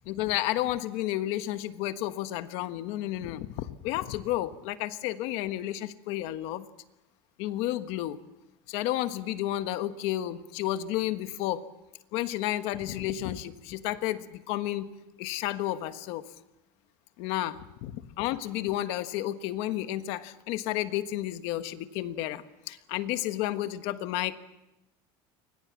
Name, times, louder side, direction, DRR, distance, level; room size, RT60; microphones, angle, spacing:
voice 1, 0.0-6.7 7.4-8.2 8.7-11.7 12.1-14.9 15.2-16.3 17.2-24.4, left 14 dB, 55° left, 11 dB, 1.4 m, -31 dB
29.5 x 24.0 x 7.4 m, 0.95 s
cardioid pair, 170°, 12 cm